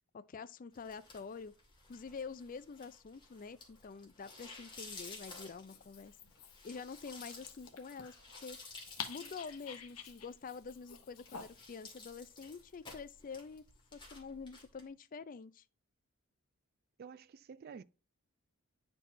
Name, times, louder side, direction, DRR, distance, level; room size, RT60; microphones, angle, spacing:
voice 1, 0.1-1.5 1.9-6.1 6.6-8.6 9.1-13.7 13.9-15.6, left 5 dB, 40° left, 0.4 m, -47 dB
sound 1, 0.7-14.8, left 3 dB, 20° left, 2.0 m, -54 dB
Dog, 5.5-11.8, left 7 dB, 80° left, 1.1 m, -50 dB
voice 2, 17.0-17.8, right 6 dB, 45° right, 0.3 m, -50 dB
9.9 x 4.6 x 2.7 m
head